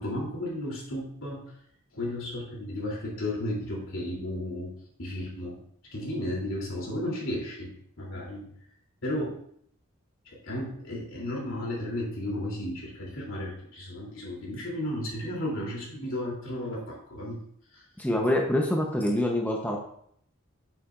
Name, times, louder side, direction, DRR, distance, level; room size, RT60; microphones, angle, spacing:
voice 1, 0.0-1.4 1.9-4.7 5.0-5.6 5.9-7.7 8.0-8.5 9.0-9.4 10.3-17.4 17.7-17.8, left 1 dB, 65° left, -4 dB, 3.1 m, -33 dB
voice 2, 18.0-19.8, left 1 dB, 10° left, 0 dB, 0.8 m, -25 dB
9.1 x 7.0 x 2.5 m, 0.67 s
head